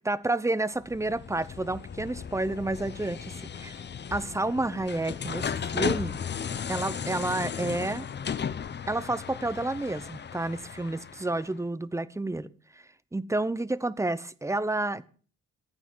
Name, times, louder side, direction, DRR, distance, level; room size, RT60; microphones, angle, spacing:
voice 1, 0.0-3.8 4.1-6.2 6.7-8.1 8.9-12.5 13.1-15.1, right 2 dB, 10° right, 0.9 m, -30 dB
sound 1, 0.8-11.5, left 7 dB, 35° left, 0.8 m, -35 dB
15.5 x 9.0 x 7.4 m
cardioid pair, 90°, 30 cm